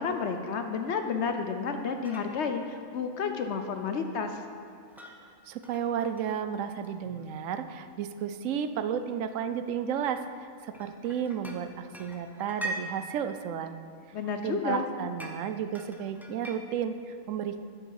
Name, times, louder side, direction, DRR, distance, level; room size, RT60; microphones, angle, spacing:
voice 1, 0.0-4.4 14.1-14.9, left 5 dB, 60° left, 6 dB, 0.8 m, -31 dB
sound 1, 2.0-2.4 4.7-5.2 5.6-6.2 6.8-7.3 8.4-8.7 9.2-9.3 10.2-11.6 11.9-12.8 15.2-15.4 15.7-16.6, right 1 dB, ahead, 0.4 m, -41 dB
voice 2, 5.5-10.2 10.6-13.8 14.4-17.6, right 8 dB, 70° right, 10 dB, 0.9 m, -32 dB
9.7 x 7.9 x 4.7 m, 2.2 s
omnidirectional pair, 1.5 m